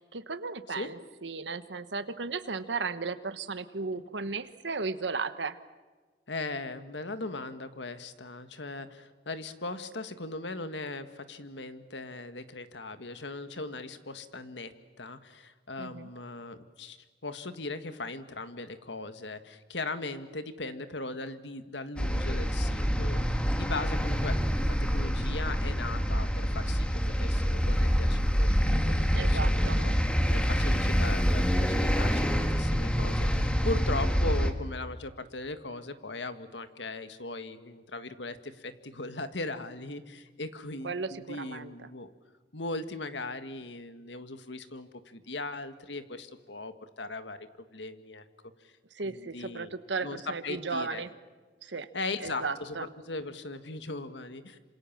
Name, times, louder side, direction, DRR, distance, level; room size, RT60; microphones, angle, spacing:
voice 1, 0.0-5.6 15.8-16.1 29.2-29.8 40.8-41.7 48.9-51.1 51.6-51.9 52.2-52.8, right 4 dB, 85° right, 12 dB, 1.2 m, -35 dB
voice 2, 6.3-29.9 30.3-42.1 42.5-48.2 48.6-48.7 49.0-49.7 50.0-51.0 51.6-54.6, left 2 dB, 85° left, 10 dB, 1.8 m, -39 dB
sound 1, 22.0-34.5, equal, 5° left, 1.6 m, -26 dB
27.5 x 26.5 x 7.4 m, 1.3 s
head